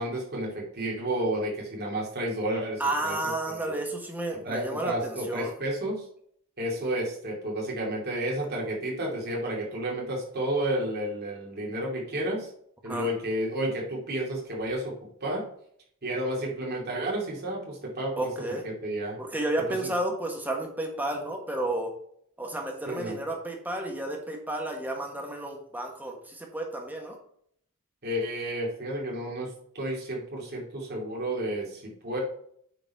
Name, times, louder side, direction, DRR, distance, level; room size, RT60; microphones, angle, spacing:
voice 1, 0.0-3.2 3.5-3.7 4.4-6.1 6.6-12.5 12.8-14.9 15.2-15.4 16.0-19.2 19.7-19.9 22.8-23.2 28.0-32.2, right 1 dB, 50° right, -2 dB, 2.5 m, -31 dB
voice 2, 2.8-5.5 12.9-13.1 18.2-18.7 19.2-21.9 22.4-27.2, right 1 dB, 10° right, 1 dB, 1.4 m, -32 dB
9.0 x 4.1 x 4.1 m, 0.65 s
head